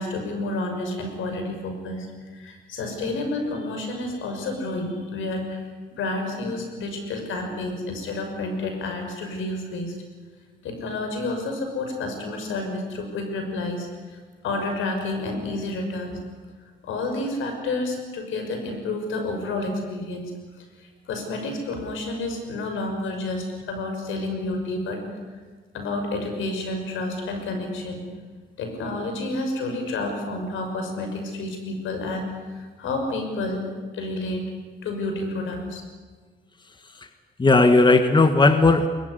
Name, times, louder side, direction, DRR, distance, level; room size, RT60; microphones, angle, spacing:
voice 1, 0.0-2.1 2.3-5.6 5.9-10.0 10.6-16.2 16.8-20.3 20.6-25.0 25.7-28.0 28.6-33.6 33.9-34.4 34.8-35.8, left 2 dB, 80° left, 5 dB, 6.1 m, -30 dB
voice 2, 37.4-38.9, left 3 dB, 25° left, 8 dB, 1.7 m, -17 dB
22.5 x 21.0 x 9.8 m, 1.4 s
cardioid pair, 90°, 20 cm